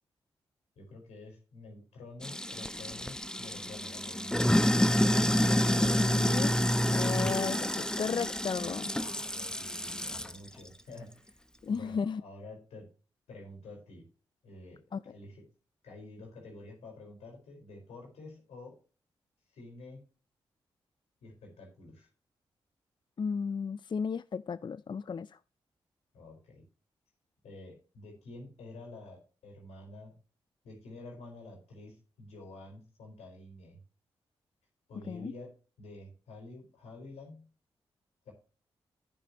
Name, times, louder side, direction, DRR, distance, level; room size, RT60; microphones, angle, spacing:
voice 1, 0.7-4.5 8.9-11.4 11.7-12.9 13.3-14.1 14.4-14.8 15.1-15.5 15.8-18.8 19.5-20.0 21.2-22.1 26.1-26.6 27.4-30.2 30.6-33.8 34.9-37.5 38.2-38.3, left 2 dB, 80° left, 4.7 m, -49 dB
Sink (filling or washing), 2.2-10.4, equal, 5° left, 0.8 m, -28 dB
voice 2, 5.5-6.6 6.9-8.9 11.6-12.2 14.9-15.0 23.2-25.4 35.1-35.3, left 5 dB, 45° left, 0.4 m, -34 dB
11.0 x 9.3 x 3.0 m
supercardioid pair, 40°, 11 cm